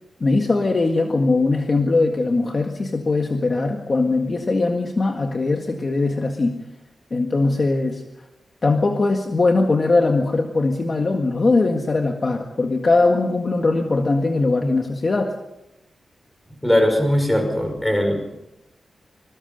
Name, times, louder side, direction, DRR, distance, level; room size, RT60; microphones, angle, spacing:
voice 1, 0.2-6.6 7.1-8.0 8.6-15.3, left 3 dB, 35° left, 3 dB, 1.8 m, -20 dB
voice 2, 16.6-18.2, equal, 5° left, 4 dB, 5.4 m, -19 dB
26.5 x 21.5 x 5.4 m, 0.90 s
wide cardioid pair, 175°, 0 cm